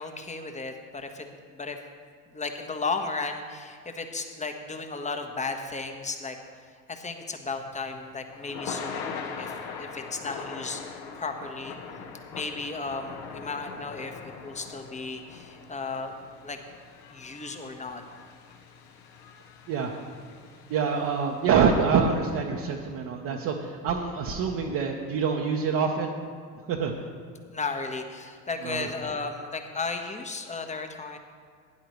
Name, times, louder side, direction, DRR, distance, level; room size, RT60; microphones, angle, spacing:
voice 1, 0.0-1.8 2.3-6.4 6.9-9.5 9.8-11.8 12.3-16.1 16.4-16.6 17.1-18.0 27.5-31.2, left 4 dB, 15° left, 5 dB, 1.2 m, -34 dB
Thunder / Rain, 7.5-21.8, left 5 dB, 55° left, 1.4 m, -42 dB
voice 2, 20.7-26.1 26.7-26.9 28.6-28.9, right 6 dB, 45° right, -1 dB, 1.2 m, -26 dB
17.0 x 10.0 x 3.2 m, 2.1 s
figure-of-eight pair, 70°, 48 cm